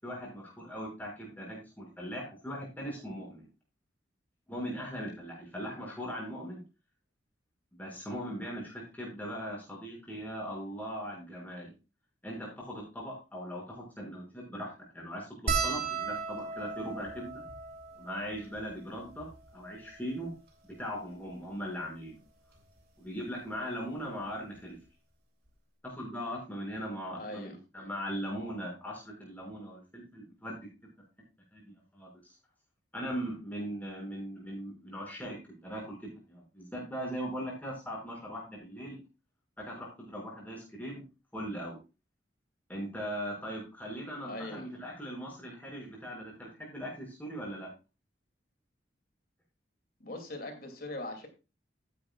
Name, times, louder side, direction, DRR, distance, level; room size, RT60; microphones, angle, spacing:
voice 1, 0.0-3.5 4.5-6.6 7.7-11.7 12.2-17.4 18.0-20.3 20.8-22.2 23.0-24.8 25.8-30.7 31.5-32.3 32.9-39.0 39.6-41.0 41.3-41.8 42.7-47.7, equal, 10° left, -3 dB, 5.8 m, -39 dB
sound 1, 15.5-20.1 20.8-20.9 21.1-21.3 22.6-22.8 24.2-24.3 24.6-24.8, right 4 dB, 55° right, 3.0 m, -36 dB
voice 2, 27.2-27.6 44.2-44.7 50.0-51.3, left 1 dB, 50° left, 5 dB, 2.6 m, -40 dB
14.0 x 10.0 x 2.4 m, 0.29 s
head